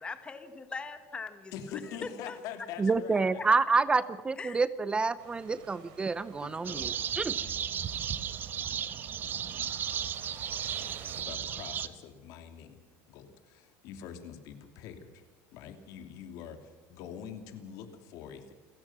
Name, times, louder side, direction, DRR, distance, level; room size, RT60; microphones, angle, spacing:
voice 1, 0.0-1.5 1.8-2.4 3.4-3.5 4.4-4.6, left 4 dB, 15° left, 9 dB, 1.6 m, -41 dB
voice 2, 1.5-3.4 6.4-7.8 11.2-12.8 13.1-15.2 15.5-18.5, left 8 dB, 65° left, 7 dB, 2.9 m, -45 dB
voice 3, 2.8-7.4, right 4 dB, 15° right, 16 dB, 0.5 m, -28 dB
sound 1, 5.2-11.2, right 9 dB, 80° right, 3.4 m, -53 dB
sound 2, 6.7-11.9, right 8 dB, 30° right, 1.1 m, -35 dB
29.5 x 16.0 x 6.0 m, 1.3 s
cardioid pair, 155°, 7 cm